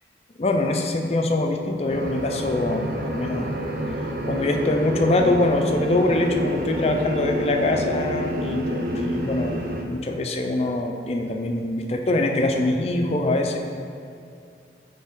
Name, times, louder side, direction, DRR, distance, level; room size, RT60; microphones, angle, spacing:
voice 1, 0.4-3.5 4.2-13.6, left 2 dB, 35° left, 3 dB, 0.4 m, -23 dB
sound 1, 1.9-9.8, equal, 55° right, 0.5 m, -28 dB
8.5 x 3.4 x 3.7 m, 2.4 s
head